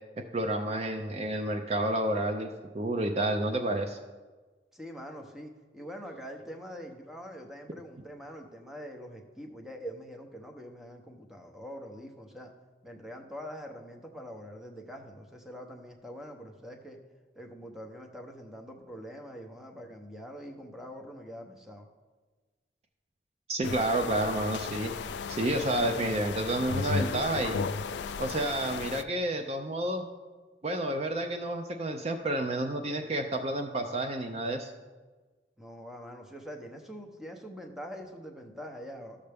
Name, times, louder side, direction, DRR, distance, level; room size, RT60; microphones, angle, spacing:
voice 1, 0.3-2.5 2.7-4.0 23.5-24.9 25.3-27.6 28.2-30.0 30.6-34.7, right 1 dB, 35° right, 5 dB, 0.4 m, -30 dB
voice 2, 4.7-12.5 12.8-17.0 17.4-21.9 35.6-39.2, equal, ahead, 2 dB, 0.8 m, -44 dB
sound 1, 23.6-29.0, left 5 dB, 80° left, 0.4 m, -34 dB
12.5 x 6.6 x 3.4 m, 1.3 s
head